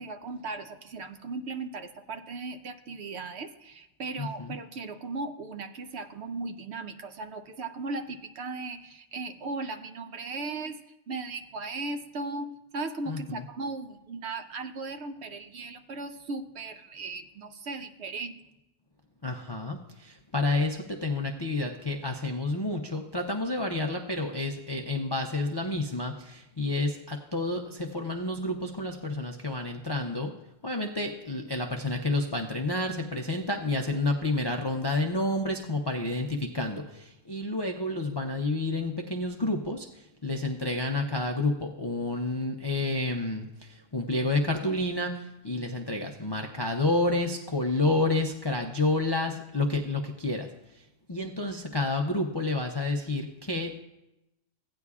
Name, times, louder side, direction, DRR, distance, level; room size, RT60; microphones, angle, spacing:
voice 1, 0.0-10.8 11.1-18.4, right 3 dB, 65° right, 8 dB, 0.8 m, -37 dB
voice 2, 4.2-4.5 13.1-13.4 19.2-30.3 30.6-53.8, left 2 dB, 40° left, 3 dB, 0.3 m, -30 dB
16.0 x 9.5 x 2.4 m, 0.93 s
omnidirectional pair, 1.4 m